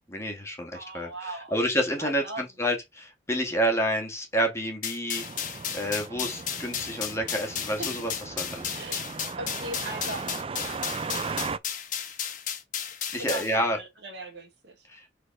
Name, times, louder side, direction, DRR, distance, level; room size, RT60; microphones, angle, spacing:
voice 1, 0.1-8.8 13.1-13.8 14.9-15.0, equal, 15° left, 1.8 m, -29 dB
voice 2, 0.7-1.6 2.0-2.4 7.8-7.9 8.8-9.1 9.4-11.2 13.1-14.9, right 1 dB, 60° right, 2.2 m, -39 dB
sound 1, 4.8-13.5, left 8 dB, 45° left, 1.4 m, -34 dB
sound 2, 5.2-11.6, right 5 dB, 30° right, 0.4 m, -37 dB
4.8 x 4.1 x 5.9 m
head